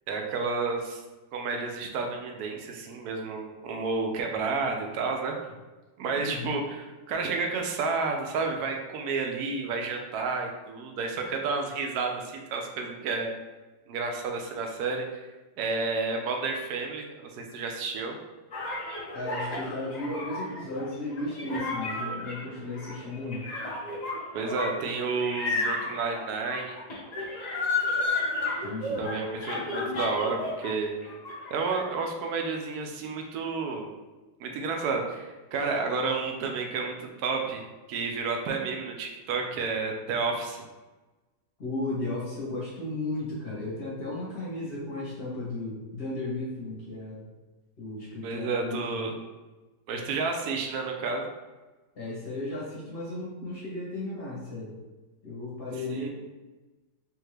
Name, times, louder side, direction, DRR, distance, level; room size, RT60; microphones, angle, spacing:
voice 1, 0.1-1.0 1.3-5.4 6.0-13.3 13.9-15.1 15.6-18.2 24.3-26.8 29.0-30.9 31.5-33.9 34.4-40.6 48.2-49.1 49.9-51.3 55.9-56.1, right 4 dB, 70° right, 2 dB, 0.9 m, -31 dB
voice 2, 6.2-6.5 19.1-23.4 28.6-29.1 41.6-47.3 47.8-49.1 51.9-54.8 55.2-56.1, left 2 dB, 40° left, -7 dB, 1.0 m, -35 dB
sound 1, 18.5-30.7 31.0-31.9, left 2 dB, 55° left, 0.4 m, -32 dB
3.5 x 2.7 x 3.2 m, 1.2 s
omnidirectional pair, 2.0 m